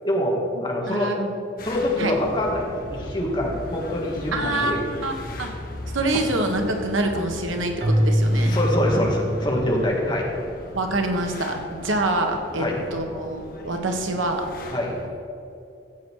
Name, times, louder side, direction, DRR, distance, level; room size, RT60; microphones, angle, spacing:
voice 1, 0.0-1.1 1.6-4.8 5.2-5.3 6.1-6.2 8.3-10.3 12.6-12.8 14.7-15.0, left 1 dB, 25° left, -2 dB, 1.9 m, -25 dB
voice 2, 0.9-1.3 2.0-2.1 4.3-5.5 5.9-8.6 10.7-12.6 12.9-14.5, right 2 dB, 90° right, 4 dB, 1.5 m, -26 dB
sound 1, 1.6-15.1, left 1 dB, 45° left, 1.3 m, -38 dB
Keyboard (musical), 7.8-10.1, equal, 50° right, 1.5 m, -23 dB
14.5 x 8.0 x 4.8 m, 2.6 s
head